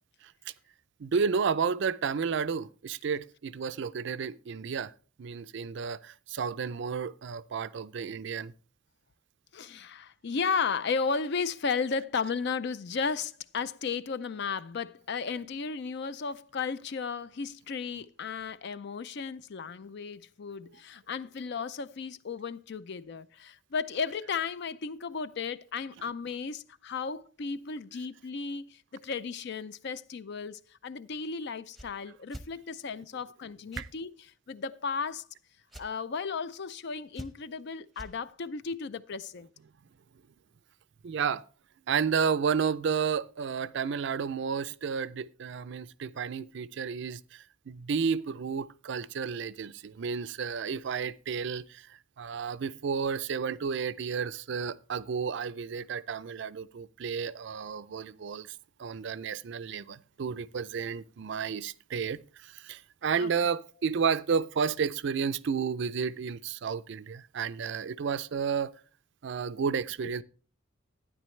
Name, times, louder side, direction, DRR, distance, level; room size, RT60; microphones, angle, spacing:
voice 1, 1.0-4.9 5.2-8.5 33.8-33.9 41.0-41.4 41.9-51.9 52.2-68.7 69.2-70.2, right 6 dB, 60° right, 0.4 m, -32 dB
voice 2, 9.5-34.1 34.5-35.3 35.8-39.5 63.2-63.3 70.0-70.1, left 5 dB, 55° left, 0.5 m, -34 dB
sound 1, 31.7-31.9 32.3-32.5 33.7-33.9 35.7-35.9 37.1-37.6 37.9-38.1, equal, ahead, 0.8 m, -43 dB
12.0 x 9.9 x 3.2 m
head